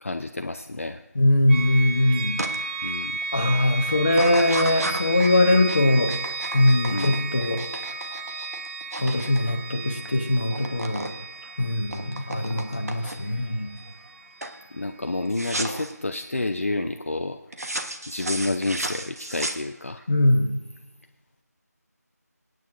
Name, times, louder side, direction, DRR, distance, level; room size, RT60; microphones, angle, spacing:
voice 1, 0.0-1.0 2.8-3.2 6.9-7.2 14.7-17.4 18.1-20.0, left 2 dB, 50° left, 7 dB, 0.5 m, -29 dB
voice 2, 1.1-2.4 3.3-6.1 6.5-7.6 9.0-11.1 11.6-13.7 20.1-20.5, left 1 dB, 30° left, 2 dB, 1.1 m, -21 dB
sound 1, 1.5-15.3, right 3 dB, 40° right, 3.8 m, -34 dB
sound 2, 2.4-2.6 3.0-3.4 4.1-10.2 10.4-11.1 11.4-13.4 13.9-14.2 14.4-14.6 15.3-15.9 17.5-20.0, right 1 dB, 60° right, 1.2 m, -33 dB
24.0 x 9.3 x 2.6 m, 1.1 s
figure-of-eight pair, 170°, 9 cm